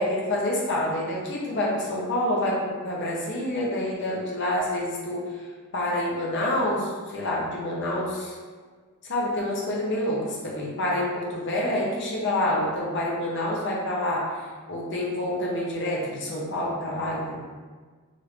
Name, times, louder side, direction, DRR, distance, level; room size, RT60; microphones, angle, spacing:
voice 1, 0.0-5.3 5.7-8.3 9.1-14.3 14.7-17.4, left 1 dB, 50° left, -4 dB, 0.6 m, -27 dB
3.2 x 2.5 x 3.2 m, 1.5 s
head